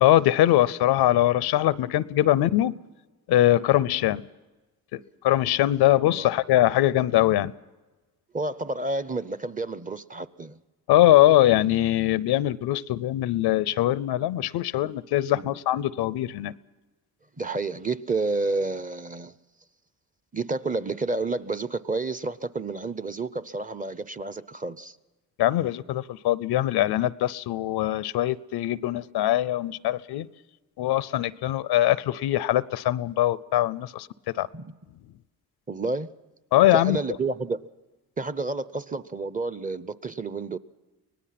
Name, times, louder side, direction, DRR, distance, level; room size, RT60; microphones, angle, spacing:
voice 1, 0.0-2.7 3.3-4.2 4.9-5.0 5.2-7.5 10.9-16.5 25.4-30.3 30.8-34.1 34.4-34.5 36.5-37.0, left 14 dB, 90° left, 20 dB, 0.7 m, -22 dB
voice 2, 8.3-10.6 15.3-15.6 17.4-19.4 20.3-25.0 34.5-34.8 35.7-36.1 36.7-37.7 38.2-40.6, right 3 dB, 20° right, 15 dB, 0.7 m, -30 dB
24.5 x 18.5 x 5.9 m, 1.2 s
cardioid pair, 80°, 38 cm